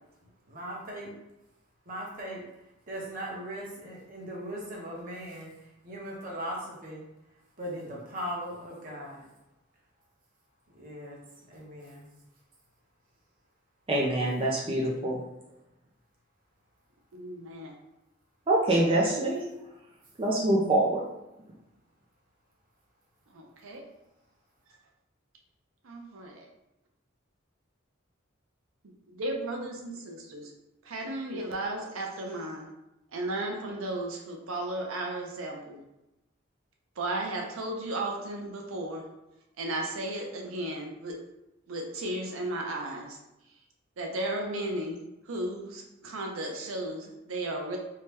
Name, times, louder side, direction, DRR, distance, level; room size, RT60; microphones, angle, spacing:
voice 1, 0.2-1.1 1.9-7.0 7.6-9.2 10.7-11.2 11.4-12.1, equal, 45° right, -4 dB, 0.8 m, -39 dB
voice 2, 13.9-15.2 18.5-19.5 20.2-21.0, right 1 dB, 25° right, -3 dB, 0.4 m, -25 dB
voice 3, 17.1-17.7 23.3-23.8 25.8-26.5 28.8-30.5 30.8-32.7 33.1-35.8 37.0-39.1 39.6-41.2 41.7-43.2 44.0-47.8, right 1 dB, 90° right, 1 dB, 0.6 m, -35 dB
2.7 x 2.2 x 3.2 m, 0.92 s
head